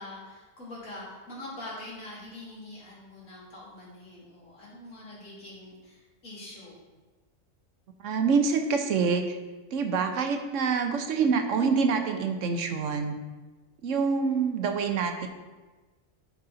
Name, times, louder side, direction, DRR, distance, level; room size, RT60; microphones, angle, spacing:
voice 1, 0.0-6.8, left 1 dB, 80° left, -7 dB, 2.9 m, -44 dB
voice 2, 8.0-9.3 9.7-13.2 13.8-15.3, right 5 dB, 70° right, 5 dB, 1.1 m, -26 dB
10.5 x 4.1 x 3.9 m, 1.2 s
omnidirectional pair, 1.4 m